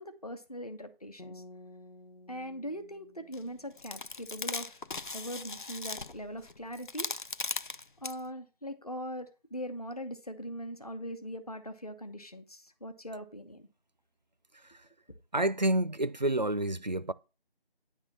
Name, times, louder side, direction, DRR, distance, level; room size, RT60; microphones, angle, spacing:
voice 1, 0.0-1.4 2.3-4.8 5.1-7.1 8.0-13.7, equal, 40° left, 1.1 m, -41 dB
sound 1, 1.2-4.4, left 2 dB, 75° left, 1.4 m, -53 dB
sound 2, 3.3-3.4 3.8-8.2, left 3 dB, 60° left, 0.4 m, -38 dB
voice 2, 15.3-17.1, right 1 dB, 50° right, 0.4 m, -28 dB
9.9 x 3.6 x 7.2 m
figure-of-eight pair, 175°, 29 cm